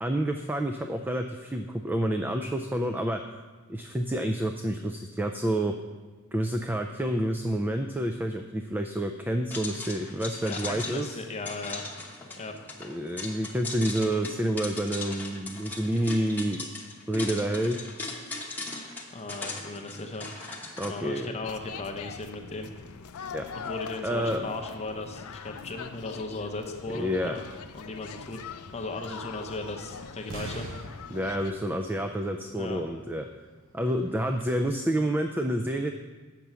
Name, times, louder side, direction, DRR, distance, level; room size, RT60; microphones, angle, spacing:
voice 1, 0.0-3.2 3.7-5.7 6.3-11.2 12.8-16.7 17.1-17.8 20.8-21.4 23.3-23.5 24.0-24.5 26.9-27.4 31.1-33.2 33.7-35.9, right 1 dB, 10° right, 5 dB, 0.3 m, -29 dB
sound 1, 9.5-20.9, left 2 dB, 10° left, 1.0 m, -38 dB
voice 2, 10.4-11.9 12.4-12.6 19.1-20.3 20.7-22.7 23.5-27.4 27.7-28.4 28.7-30.7 32.6-32.8, left 2 dB, 30° left, 4 dB, 0.7 m, -37 dB
sound 2, 21.4-31.5, left 6 dB, 70° left, 0.5 m, -42 dB
sound 3, 30.0-32.7 33.0-33.1 33.6-33.7 34.1-34.7, right 2 dB, 60° right, 0.8 m, -43 dB
7.5 x 5.9 x 6.8 m, 1.3 s
head